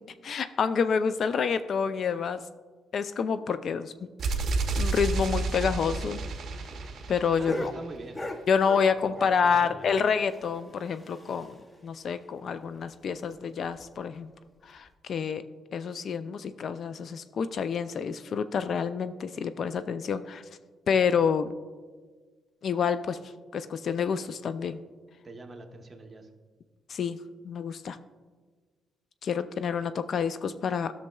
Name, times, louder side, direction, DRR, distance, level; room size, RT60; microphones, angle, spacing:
voice 1, 0.2-2.4 2.9-3.9 4.8-6.2 7.1-7.7 8.5-11.6 11.8-14.3 14.7-15.4 15.7-20.4 20.9-21.5 22.6-23.2 23.5-24.8 26.9-27.2 27.4-28.0 29.2-30.9, left 6 dB, 55° left, 12 dB, 0.3 m, -28 dB
sound 1, 4.2-8.1, right 3 dB, 60° right, 0.6 m, -31 dB
sound 2, 6.1-9.5 9.8-11.8 12.1-12.2 12.4-12.5 12.9-13.1 13.6-13.9 14.8-14.9, left 1 dB, 15° left, 0.6 m, -40 dB
voice 2, 7.4-8.2 9.1-9.9 25.2-26.3, right 2 dB, 30° right, 3 dB, 1.0 m, -44 dB
12.5 x 6.3 x 2.3 m, 1.4 s
cardioid pair, 90°, 0 cm